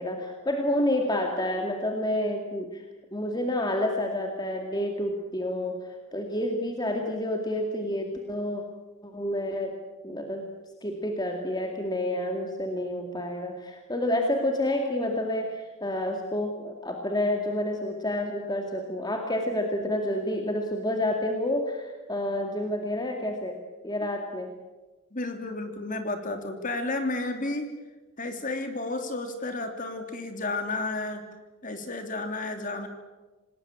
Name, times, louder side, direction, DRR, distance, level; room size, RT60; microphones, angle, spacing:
voice 1, 0.0-2.8 3.1-8.6 9.0-9.8 10.0-10.5 10.8-24.5, left 1 dB, 20° left, 3 dB, 2.2 m, -29 dB
voice 2, 25.1-27.7 28.2-31.2 31.6-32.9, left 2 dB, 35° left, 6 dB, 3.1 m, -32 dB
27.5 x 19.5 x 8.8 m, 1.2 s
head